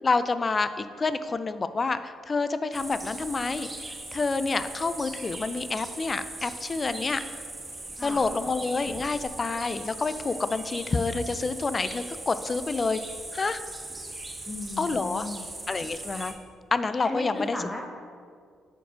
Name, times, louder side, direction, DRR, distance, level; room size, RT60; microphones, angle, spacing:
voice 1, 0.0-3.7 4.1-7.2 8.0-13.0 13.3-13.6 14.8-15.3 15.7-16.3 16.7-17.6, left 4 dB, 30° left, 12 dB, 0.3 m, -28 dB
sound 1, 2.7-16.3, right 2 dB, 20° right, 1.1 m, -39 dB
voice 2, 14.5-15.4 17.0-17.9, left 1 dB, 15° left, -1 dB, 0.8 m, -35 dB
6.6 x 4.5 x 5.0 m, 2.1 s
cardioid pair, 90°, 0 cm